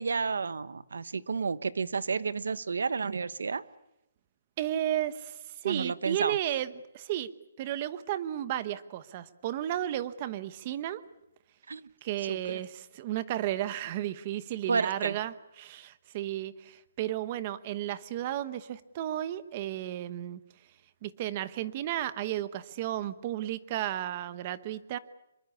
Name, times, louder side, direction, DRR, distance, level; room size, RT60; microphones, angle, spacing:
voice 1, 0.0-3.6 5.6-6.4 11.7-11.9 12.3-12.6 14.7-15.2, right 5 dB, 85° right, 16 dB, 1.1 m, -31 dB
voice 2, 4.6-7.3 7.6-11.0 12.0-20.4 21.0-25.0, right 12 dB, 25° right, 14 dB, 1.0 m, -33 dB
26.0 x 23.5 x 8.4 m, 0.86 s
hypercardioid pair, 175°, 0 cm